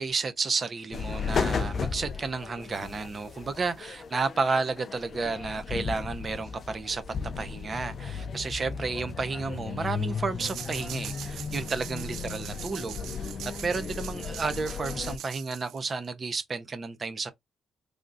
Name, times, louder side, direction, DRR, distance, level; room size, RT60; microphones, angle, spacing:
voice 1, 0.0-13.3 13.6-17.3, right 4 dB, 35° right, 0.5 m, -32 dB
sound 1, 0.9-15.2, left 5 dB, 45° left, 0.4 m, -35 dB
sound 2, 10.4-16.1, right 10 dB, 85° right, 0.3 m, -42 dB
3.4 x 2.5 x 2.5 m
cardioid pair, 135°, 0 cm